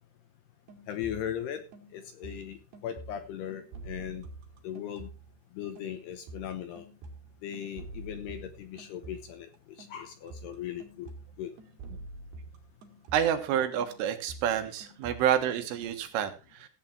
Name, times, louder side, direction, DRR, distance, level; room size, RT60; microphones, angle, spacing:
sound 1, 0.7-1.5 1.7-5.4 5.8-13.5 13.8-15.8, right 2 dB, 60° right, 4.4 m, -47 dB
voice 1, 0.9-1.6 1.9-2.6 2.8-4.3 4.6-5.1 5.5-6.8 7.4-9.5 9.8-11.1 11.4-11.5, left 10 dB, 75° left, 8 dB, 2.6 m, -38 dB
voice 2, 13.1-16.7, right 9 dB, 80° right, 7 dB, 3.9 m, -28 dB
15.5 x 8.6 x 4.4 m, 0.30 s
omnidirectional pair, 5.7 m